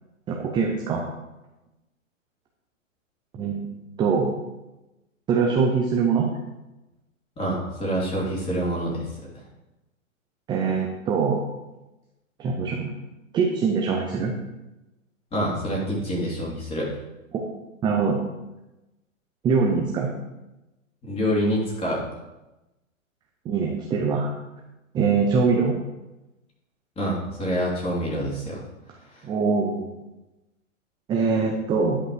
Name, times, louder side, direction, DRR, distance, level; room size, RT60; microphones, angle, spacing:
voice 1, 0.3-1.0 3.3-3.7 4.0-4.3 5.3-6.3 10.5-11.4 12.4-13.0 13.3-14.3 17.3-17.4 17.8-18.2 19.4-20.1 23.5-24.3 24.9-25.7 29.2-29.9 31.1-32.0, right 5 dB, 10° right, 0 dB, 0.6 m, -23 dB
voice 2, 7.4-9.1 15.3-16.9 21.0-22.0 27.0-28.6 29.1-29.2, equal, 15° left, -5 dB, 3.1 m, -26 dB
10.5 x 5.4 x 4.9 m, 1.0 s
hypercardioid pair, 125°, 40 cm